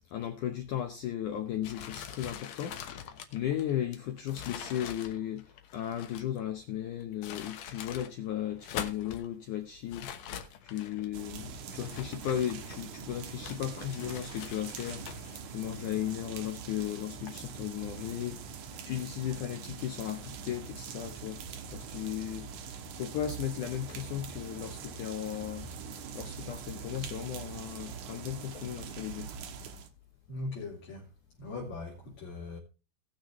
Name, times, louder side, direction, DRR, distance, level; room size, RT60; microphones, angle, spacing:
voice 1, 0.1-21.4 21.7-22.5 23.0-25.7 26.1-29.3, left 11 dB, 85° left, 1.7 m, -36 dB
sound 1, 1.6-6.4 7.0-8.1 8.5-9.3 9.9-11.1 11.7-13.0 13.4-15.4, left 9 dB, 70° left, 2.2 m, -44 dB
sound 2, 11.1-29.9, right 6 dB, 70° right, 1.8 m, -43 dB
voice 2, 30.3-31.1 31.4-32.6, left 2 dB, 45° left, 3.8 m, -40 dB
19.5 x 6.6 x 3.1 m
omnidirectional pair, 4.9 m